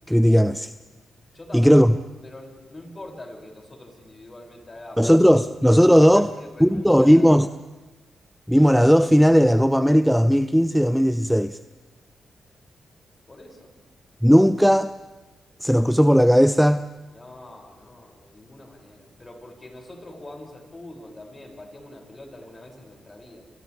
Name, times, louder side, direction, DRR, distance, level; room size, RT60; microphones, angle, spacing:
voice 1, 0.1-0.7 1.5-1.9 5.0-6.3 6.6-7.5 8.5-11.6 14.2-14.9 15.6-16.8, equal, ahead, 12 dB, 0.7 m, -16 dB
voice 2, 1.3-1.8 2.2-5.1 5.7-7.5 13.3-13.7 17.1-23.5, left 1 dB, 35° left, 0 dB, 7.3 m, -43 dB
28.5 x 28.0 x 3.7 m, 1.1 s
supercardioid pair, 45°, 0 cm